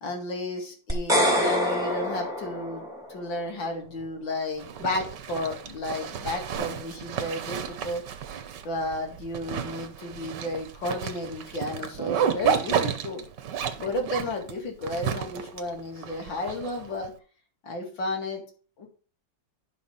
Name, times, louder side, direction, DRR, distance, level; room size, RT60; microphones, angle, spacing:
voice 1, 0.0-2.8 3.1-8.0 8.6-13.2 13.8-17.1 17.6-18.4 18.8-18.9, left 1 dB, 80° left, 2 dB, 2.8 m, -32 dB
sound 1, 0.9-3.2, equal, ahead, 2.1 m, -25 dB
Zipper (clothing), 4.6-17.1, right 8 dB, 70° right, 1.5 m, -32 dB
11.5 x 4.4 x 5.6 m, 0.38 s
omnidirectional pair, 2.0 m